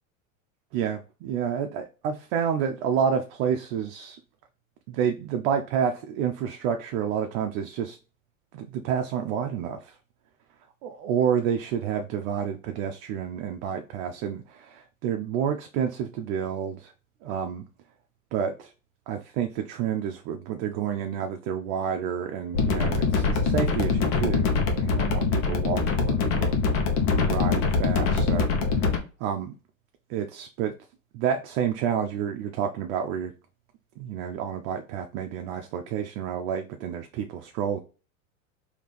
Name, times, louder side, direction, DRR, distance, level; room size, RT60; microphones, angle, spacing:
voice 1, 0.7-4.2 4.9-8.0 8.5-10.0 10.8-16.9 17.2-17.6 18.3-18.7 19.1-26.6 27.1-28.9 29.2-29.5 30.1-30.8 31.1-33.3 34.0-37.8, right 8 dB, 55° right, 0.6 m, -29 dB
sound 1, 22.5-29.0, left 4 dB, 65° left, 1.1 m, -24 dB
3.3 x 2.8 x 4.0 m
hypercardioid pair, 105°, 40 cm